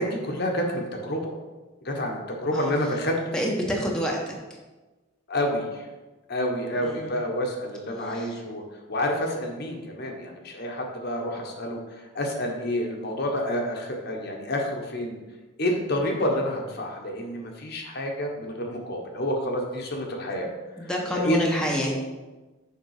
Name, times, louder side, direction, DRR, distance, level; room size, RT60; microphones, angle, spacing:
voice 1, 0.0-1.3 1.8-3.2 5.3-5.9 6.3-8.6 8.9-15.2 15.6-20.5 20.8-21.4, left 1 dB, 55° left, 1 dB, 1.2 m, -29 dB
voice 2, 3.3-4.3 6.8-7.1 8.0-8.3 20.8-22.1, equal, 5° left, -2 dB, 1.0 m, -28 dB
6.8 x 5.3 x 4.9 m, 1.2 s
head